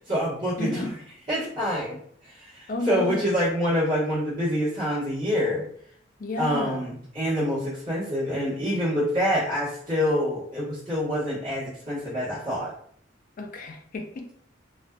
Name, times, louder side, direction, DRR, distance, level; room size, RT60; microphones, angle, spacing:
voice 1, 0.1-0.9 1.3-5.6 6.4-12.7, equal, 45° right, -10 dB, 1.1 m, -26 dB
voice 2, 0.6-0.9 2.7-3.3 6.2-6.8 13.4-14.3, left 2 dB, 45° left, 3 dB, 0.3 m, -31 dB
2.5 x 2.2 x 2.3 m, 0.62 s
head